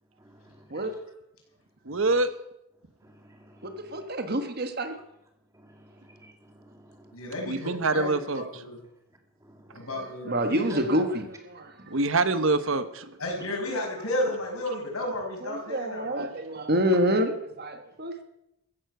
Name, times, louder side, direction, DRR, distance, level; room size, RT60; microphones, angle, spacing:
voice 1, 0.2-0.5 3.1-3.9 5.6-6.3 6.6-7.1 9.5-9.8, right 1 dB, 15° right, 3 dB, 2.1 m, -54 dB
voice 2, 1.9-2.3 7.4-8.6 11.9-13.2 13.7-13.8 16.2-16.3, right 3 dB, 60° right, 12 dB, 1.1 m, -26 dB
voice 3, 3.6-4.9 9.9-11.9 15.4-18.2, equal, 45° right, 7 dB, 1.6 m, -28 dB
voice 4, 7.1-8.8 9.7-10.6 13.2-16.0, left 1 dB, 75° left, 0 dB, 5.8 m, -32 dB
15.0 x 10.0 x 8.0 m, 0.84 s
head